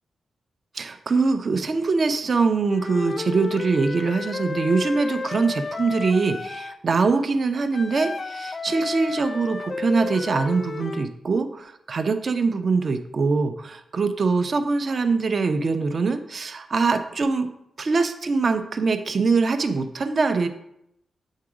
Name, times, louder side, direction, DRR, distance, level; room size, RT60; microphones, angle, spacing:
voice 1, 0.7-17.5 17.8-20.5, right 4 dB, 50° right, 7 dB, 0.6 m, -23 dB
Wind instrument woodwind instrument, 2.7-6.8 7.7-11.1, left 4 dB, 40° left, 0.3 m, -32 dB
7.4 x 3.8 x 4.9 m, 0.78 s
cardioid pair, 80°, 0 cm